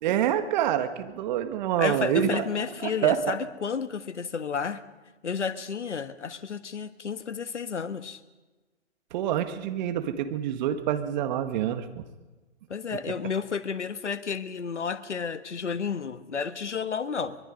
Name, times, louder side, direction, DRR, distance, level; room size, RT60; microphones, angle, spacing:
voice 1, 0.0-2.4 2.8-3.4 9.1-12.0, right 10 dB, 40° right, 9 dB, 1.7 m, -26 dB
voice 2, 1.8-4.8 5.2-8.2 12.7-17.4, left 6 dB, 80° left, 11 dB, 1.5 m, -31 dB
24.5 x 22.0 x 5.2 m, 1.2 s
hypercardioid pair, 135°, 35 cm